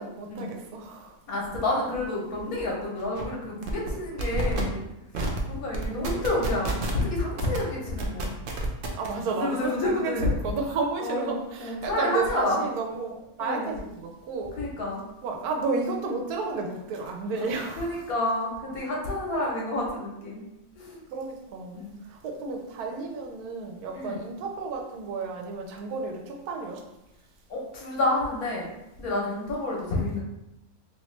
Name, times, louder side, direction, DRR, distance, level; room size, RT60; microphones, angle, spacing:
voice 1, 0.0-1.2 5.8-6.4 8.9-14.6 15.2-18.0 21.1-26.8 29.1-29.3, right 4 dB, 90° right, 2 dB, 1.1 m, -32 dB
voice 2, 1.3-4.8 5.5-8.3 9.3-10.3 11.0-12.6 13.4-13.7 14.6-15.0 17.8-20.4 20.8-21.0 21.7-22.0 23.9-24.2 27.5-28.7 29.0-30.2, left 2 dB, 75° left, -3 dB, 1.4 m, -29 dB
sound 1, 2.6-2.7 3.0-3.2 3.6-3.9 4.2-4.6 5.1-5.4 5.7-7.0 7.4-7.6 8.0-9.1, right 2 dB, 70° right, 0.5 m, -29 dB
3.0 x 2.9 x 3.1 m, 0.89 s
omnidirectional pair, 1.6 m